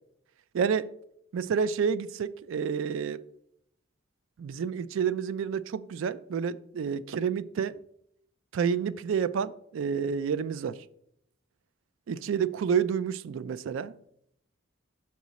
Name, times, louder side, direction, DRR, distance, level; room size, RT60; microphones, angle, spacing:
voice 1, 0.5-0.9 1.3-3.2 4.4-7.8 8.5-10.8 12.1-14.0, right 6 dB, 65° right, 0.3 m, -29 dB
6.0 x 4.7 x 4.1 m
head